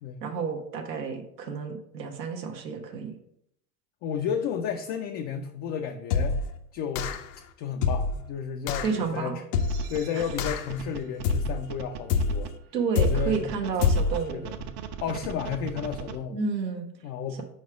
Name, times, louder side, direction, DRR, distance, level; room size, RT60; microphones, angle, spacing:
voice 1, 0.2-3.1 8.8-9.4 10.1-10.2 12.7-14.4 16.3-16.9, right 5 dB, 80° right, 2 dB, 1.0 m, -30 dB
voice 2, 4.0-6.4 6.7-7.2 7.6-9.4 9.9-12.5 13.0-13.5 14.3-14.7 15.0-16.4 17.0-17.4, left 7 dB, 30° left, 4 dB, 0.4 m, -32 dB
sound 1, 6.1-6.5 6.9-7.3 7.8-8.2 8.7-8.9 9.5-9.9 10.4-10.8 11.2-11.7 12.1-12.5 12.9-13.4 13.8-14.2, left 4 dB, 70° left, 0.7 m, -26 dB
sound 2, 9.6-12.5 13.0-16.2, right 8 dB, 35° right, 0.5 m, -39 dB
4.8 x 4.2 x 4.8 m, 0.74 s
hypercardioid pair, 90°, 48 cm